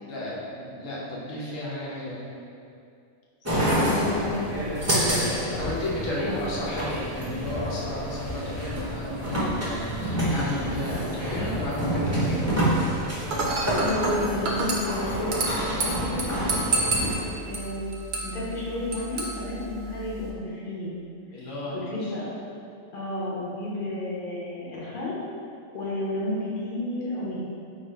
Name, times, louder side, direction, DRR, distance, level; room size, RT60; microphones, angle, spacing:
voice 1, 0.0-2.3 5.5-12.8 21.3-22.1, left 1 dB, 75° left, -6 dB, 1.1 m, -33 dB
sound 1, 3.4-17.1, equal, 20° right, 0.4 m, -28 dB
voice 2, 3.5-5.6 6.2-6.4 13.8-16.3 16.6-17.8 18.2-20.9 21.7-22.6 22.9-25.2 25.7-27.4, left 2 dB, 45° left, -7 dB, 0.9 m, -32 dB
Dishes pots and pans / Glass, 13.3-20.3, right 2 dB, 90° right, 0.4 m, -30 dB
3.0 x 2.6 x 4.3 m, 2.4 s
omnidirectional pair, 1.4 m